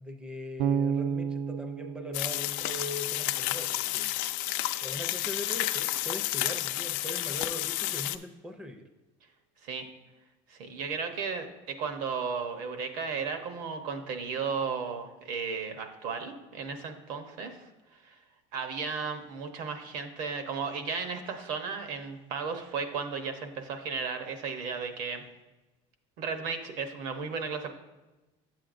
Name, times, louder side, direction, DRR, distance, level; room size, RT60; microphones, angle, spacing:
voice 1, 0.0-4.1 4.8-8.9, left 1 dB, 5° right, 6 dB, 0.4 m, -40 dB
Bass guitar, 0.6-3.6, right 7 dB, 90° right, 0.4 m, -32 dB
sound 1, 2.1-8.2, left 15 dB, 75° left, 0.4 m, -31 dB
voice 2, 10.5-17.7 18.0-18.2 18.5-25.2 26.2-27.7, right 5 dB, 65° right, 7 dB, 0.9 m, -34 dB
9.2 x 7.6 x 2.5 m, 1.1 s
cardioid pair, 165°, 14 cm